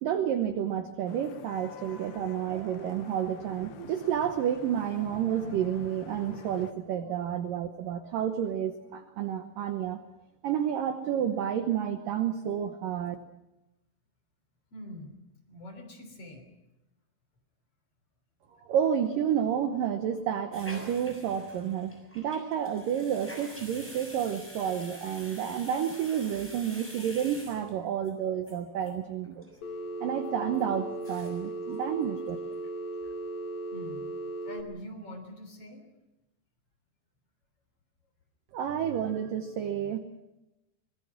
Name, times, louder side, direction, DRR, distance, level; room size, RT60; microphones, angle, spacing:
voice 1, 0.0-10.0 10.4-13.2 18.7-29.5 30.0-32.4 38.5-40.0, right 9 dB, 75° right, 8 dB, 2.0 m, -30 dB
Vehicle horn car horn honking / Traffic noise roadway noise, 1.1-6.7, left 8 dB, 70° left, 3.0 m, -48 dB
voice 2, 14.7-15.1 15.5-16.5 33.7-34.1 34.4-35.9, left 1 dB, 35° left, 4 dB, 4.0 m, -44 dB
sound 1, 20.5-28.1 28.5-28.6 28.8-28.9 29.2-29.6 29.9-30.0 30.5-30.6 30.9-31.5 31.7-31.8 32.2-32.7 33.0-33.1, equal, 5° left, 5.7 m, -47 dB
Telephone, 29.6-34.6, right 2 dB, 50° left, 2.5 m, -37 dB
25.0 x 20.5 x 6.0 m, 0.97 s
omnidirectional pair, 5.3 m